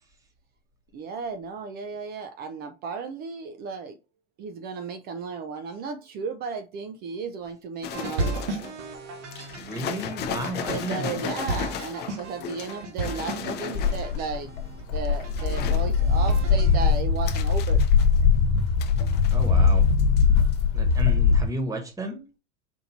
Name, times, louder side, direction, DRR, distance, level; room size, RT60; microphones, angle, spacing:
voice 1, 0.9-4.0 4.4-8.5 10.7-14.5 14.9-17.8, right 5 dB, 30° right, 0.4 m, -34 dB
sound 1, 7.8-8.8 9.3-14.3 14.9-15.9 16.3-18.4 18.8-19.7 20.0-20.2 20.5-20.6, left 7 dB, 30° left, 0.6 m, -35 dB
sound 2, 7.9-16.8, right 3 dB, 75° right, 1.3 m, -35 dB
voice 2, 9.5-11.3 19.3-19.9 20.7-22.2, right 1 dB, 10° right, 1.2 m, -33 dB
Walk footsteps, 13.7-21.4, left 5 dB, 50° left, 1.2 m, -21 dB
4.4 x 2.6 x 4.1 m
hypercardioid pair, 120°, 36 cm